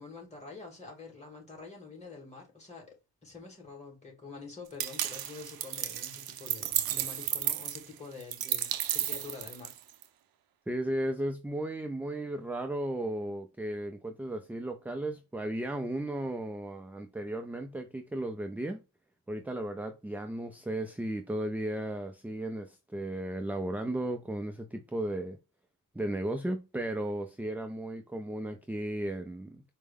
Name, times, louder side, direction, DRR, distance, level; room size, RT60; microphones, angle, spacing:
voice 1, 0.0-3.0 3.2-9.7, left 4 dB, 20° left, 2.2 m, -47 dB
sound 1, 4.8-10.0, right 11 dB, 85° right, 0.6 m, -33 dB
voice 2, 10.7-18.8 19.3-25.4 25.9-29.6, right 1 dB, 5° right, 0.3 m, -35 dB
4.5 x 2.0 x 3.5 m
cardioid pair, 105°, 35 cm